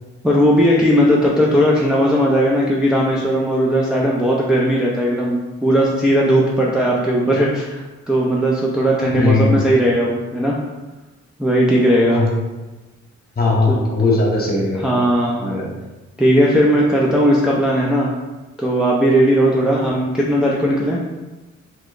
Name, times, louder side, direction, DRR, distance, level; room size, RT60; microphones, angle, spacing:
voice 1, 0.2-10.6 11.4-12.2 13.7-13.8 14.8-15.4 16.2-18.1 18.6-21.0, equal, 5° right, -5 dB, 0.4 m, -17 dB
voice 2, 9.2-9.7 12.1-12.3 13.4-15.0 15.4-15.7, left 3 dB, 30° left, -3 dB, 1.0 m, -18 dB
3.0 x 2.9 x 2.4 m, 1.1 s
cardioid pair, 90°, 30 cm